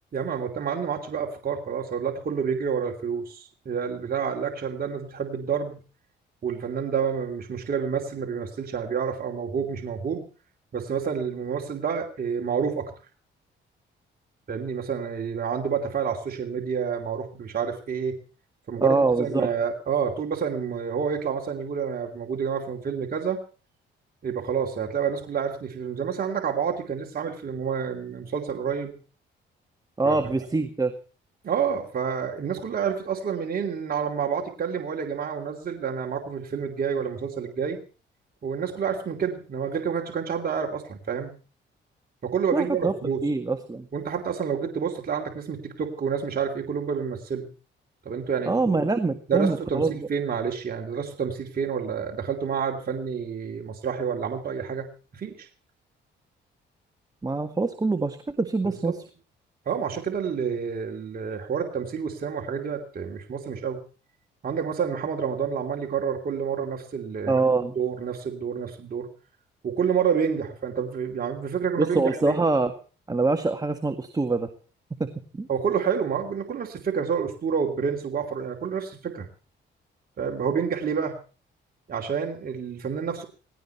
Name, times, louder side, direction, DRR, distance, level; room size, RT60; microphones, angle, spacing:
voice 1, 0.1-5.8 6.4-10.2 10.7-12.9 14.5-18.2 18.7-23.4 24.2-28.9 30.0-30.3 31.4-37.8 38.4-41.4 42.2-43.2 43.9-47.5 48.0-48.8 49.3-55.5 58.8-58.9 59.7-63.8 64.4-67.4 67.8-69.1 69.6-72.4 75.5-79.3 80.2-81.2 81.9-83.3, right 7 dB, 50° right, 2 dB, 2.8 m, -29 dB
voice 2, 18.8-19.4 30.0-30.9 42.5-42.9 43.2-43.9 48.5-50.0 57.2-59.0 67.3-67.7 71.8-72.7 73.1-74.5 75.0-75.1 75.4-75.5, right 3 dB, 20° right, 8 dB, 1.8 m, -24 dB
18.5 x 17.5 x 4.3 m, 0.37 s
cardioid pair, 90°, 20 cm